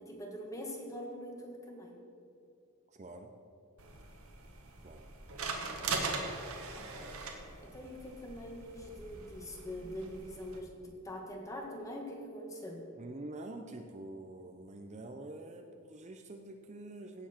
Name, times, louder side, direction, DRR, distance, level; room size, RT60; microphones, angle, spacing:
voice 1, 0.0-2.0 6.8-7.1 7.7-12.8, equal, 15° left, 0 dB, 1.7 m, -44 dB
voice 2, 2.9-3.3 4.8-5.1 7.7-8.0 12.9-17.3, right 2 dB, 35° right, 4 dB, 0.6 m, -46 dB
sound 1, 3.8-10.6, right 3 dB, 85° right, 1.6 m, -41 dB
16.5 x 7.0 x 4.4 m, 2.6 s
head